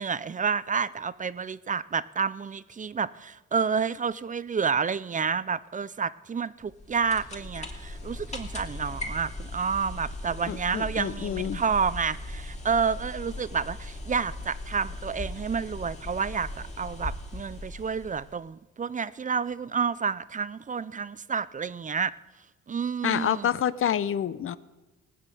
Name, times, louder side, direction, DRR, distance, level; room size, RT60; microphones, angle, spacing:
voice 1, 0.0-22.1 22.7-23.5, right 6 dB, 25° right, 0.5 m, -29 dB
sound 1, 6.6-18.4, left 2 dB, 20° left, 2.7 m, -39 dB
voice 2, 10.5-11.6 23.0-24.6, left 9 dB, 45° left, 0.7 m, -28 dB
18.5 x 6.4 x 9.2 m
cardioid pair, 90°, 30 cm